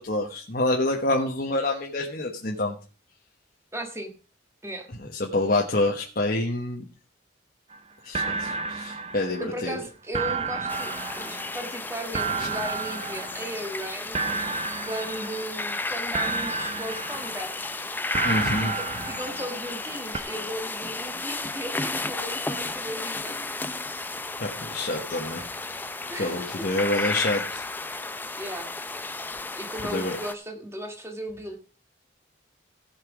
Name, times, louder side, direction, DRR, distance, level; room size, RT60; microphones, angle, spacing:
voice 1, 0.0-2.8 5.1-6.8 8.0-9.8 12.4-12.5 18.2-18.7 24.4-25.4 26.2-27.6 29.8-30.2, left 2 dB, 50° left, -1 dB, 1.2 m, -27 dB
voice 2, 3.7-4.1 4.6-4.9 9.4-14.2 14.8-17.7 18.6-23.4 24.9-25.0 26.1-26.5 28.4-28.7 29.6-31.6, equal, 15° right, 5 dB, 1.5 m, -36 dB
sound 1, 7.7-7.8 8.1-9.8 10.1-13.9 14.1-15.8 16.1-17.8 18.1-19.9 20.1-20.2, right 4 dB, 30° right, 0.6 m, -32 dB
sound 2, 10.7-30.3, left 3 dB, 10° left, 0.4 m, -33 dB
15.5 x 5.9 x 4.8 m, 0.36 s
head